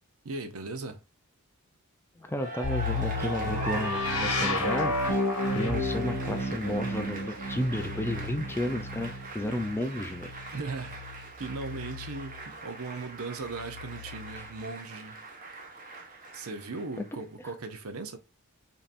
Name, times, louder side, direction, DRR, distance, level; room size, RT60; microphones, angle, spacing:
voice 1, 0.2-1.0 10.5-11.0 11.4-15.3 16.3-18.2, right 3 dB, 65° right, 0.7 m, -38 dB
voice 2, 2.2-5.2 5.5-10.3, left 1 dB, 10° left, 0.4 m, -32 dB
Cheering / Applause, 2.3-17.2, right 2 dB, 35° right, 1.0 m, -41 dB
sound 1, 2.6-12.5 13.5-14.5, left 2 dB, 70° left, 1.4 m, -32 dB
5.2 x 2.9 x 2.5 m
head